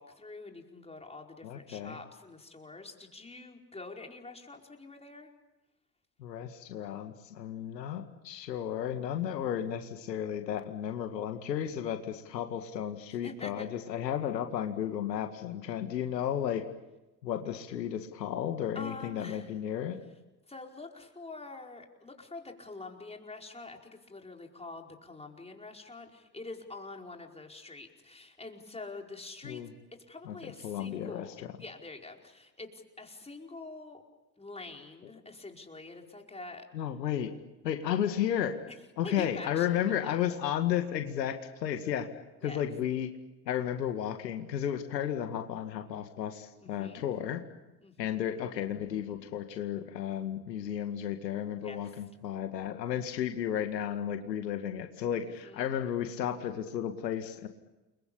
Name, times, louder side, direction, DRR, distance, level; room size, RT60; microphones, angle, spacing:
voice 1, 0.0-5.3 13.2-13.7 18.7-19.5 20.5-34.0 34.4-36.7 39.0-39.8 40.0-40.2 42.4-42.6 46.6-47.1 47.8-48.2 51.6-51.8 55.2-55.7, left 3 dB, 10° left, 2 dB, 4.9 m, -46 dB
voice 2, 1.4-2.0 6.2-16.6 17.2-20.0 29.4-29.7 30.3-31.3 35.0-35.1 36.7-37.3 37.6-38.6 39.0-42.1 42.4-43.1 43.5-47.4 48.0-57.5, left 10 dB, 75° left, 7 dB, 2.1 m, -33 dB
29.5 x 23.0 x 8.7 m, 1.0 s
figure-of-eight pair, 65°, 50 cm